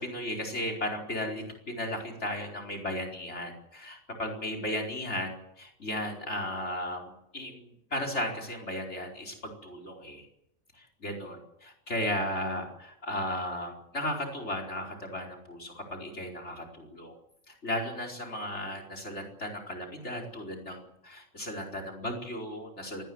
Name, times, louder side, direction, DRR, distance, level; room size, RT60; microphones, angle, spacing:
voice 1, 0.0-10.3 10.7-17.1 17.5-23.0, left 1 dB, 50° left, 5 dB, 5.0 m, -35 dB
23.5 x 18.5 x 7.9 m, 0.80 s
omnidirectional pair, 1.5 m